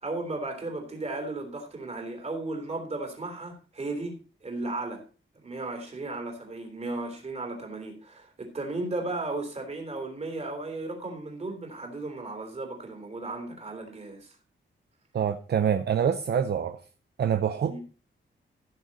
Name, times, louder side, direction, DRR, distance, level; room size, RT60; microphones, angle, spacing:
voice 1, 0.0-5.0 5.4-14.4 17.6-17.8, right 2 dB, 30° right, 3.3 m, -35 dB
voice 2, 15.1-16.8 17.2-17.8, right 8 dB, 55° right, 0.7 m, -26 dB
15.5 x 6.6 x 4.2 m
wide cardioid pair, 160°, 20 cm